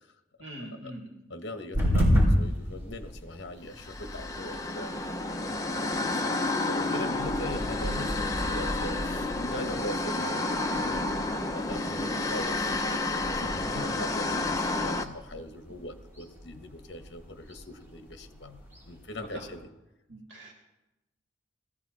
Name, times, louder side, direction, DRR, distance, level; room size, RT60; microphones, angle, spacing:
voice 1, 0.4-1.1 13.8-13.9 19.3-19.4 20.1-20.5, right 1 dB, 70° right, -1 dB, 3.1 m, -42 dB
voice 2, 1.3-19.7, left 1 dB, 60° left, 6 dB, 1.3 m, -41 dB
sound 1, 1.7-19.6, equal, 15° right, 5.0 m, -34 dB
sound 2, 3.8-15.1, left 2 dB, 15° left, 0.8 m, -30 dB
19.5 x 15.0 x 4.2 m, 0.95 s
head